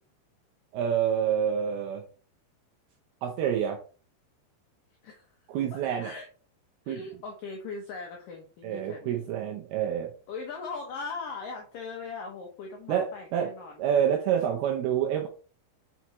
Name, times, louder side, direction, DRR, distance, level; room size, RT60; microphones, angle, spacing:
voice 1, 0.7-2.0 3.2-3.8 5.5-6.1 6.9-7.0 8.6-10.1 12.9-13.5 13.8-15.3, right 9 dB, 80° right, 2 dB, 2.3 m, -27 dB
voice 2, 5.7-6.3 6.9-9.3 10.3-13.8, left 4 dB, 85° left, 1 dB, 1.9 m, -39 dB
5.9 x 5.6 x 3.0 m, 0.38 s
omnidirectional pair, 5.3 m